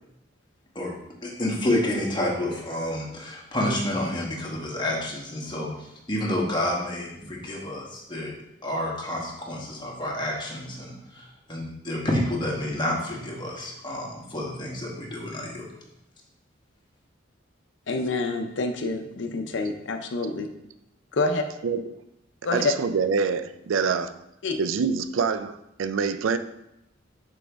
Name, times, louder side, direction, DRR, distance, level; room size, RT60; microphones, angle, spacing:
voice 1, 1.2-8.3 8.6-15.7, left 1 dB, 25° left, 1.2 m, -29 dB
voice 2, 17.9-20.5 21.1-21.4 22.4-22.7 24.4-24.6, left 3 dB, 65° left, 0.6 m, -27 dB
voice 3, 22.5-24.2 24.6-26.4, right 5 dB, 85° right, 0.4 m, -25 dB
6.1 x 4.9 x 3.4 m
head